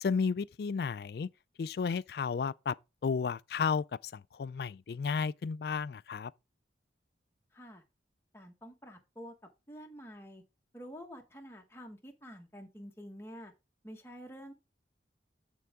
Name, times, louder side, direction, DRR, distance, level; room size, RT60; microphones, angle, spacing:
voice 1, 0.0-1.3 1.6-2.8 3.0-6.3, left 5 dB, 60° left, 0.3 m, -33 dB
voice 2, 7.5-7.8 8.3-9.3 9.7-10.4 10.7-13.5 13.8-14.5, equal, 15° left, 1.2 m, -48 dB
9.4 x 4.6 x 3.5 m
head